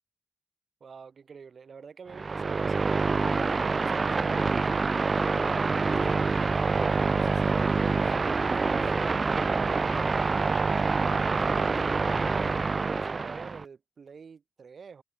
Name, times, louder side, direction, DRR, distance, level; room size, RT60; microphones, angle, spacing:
voice 1, 0.8-8.9 9.6-12.1 12.8-15.0, right 6 dB, 75° right, 3.1 m, -47 dB
sound 1, 2.1-13.6, right 4 dB, 45° right, 0.6 m, -26 dB
sound 2, 5.8-12.6, left 4 dB, 50° left, 0.6 m, -44 dB
wide cardioid pair, 110°, 0 cm